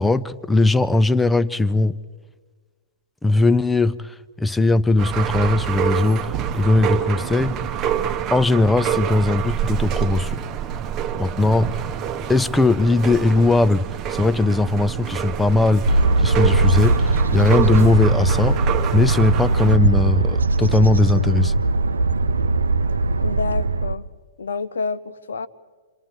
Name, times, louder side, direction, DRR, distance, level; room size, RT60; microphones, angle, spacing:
voice 1, 0.0-2.0 3.2-7.5 8.3-10.4 11.2-11.9 12.3-18.6 18.9-21.5, left 2 dB, 5° left, 0.5 m, -19 dB
sound 1, 5.0-19.8, right 9 dB, 25° right, 1.0 m, -26 dB
sound 2, 15.8-24.0, right 3 dB, 75° right, 0.6 m, -20 dB
voice 2, 23.2-24.1 24.4-25.5, left 4 dB, 70° left, 0.7 m, -28 dB
29.0 x 25.0 x 4.4 m
figure-of-eight pair, 110°, 0 cm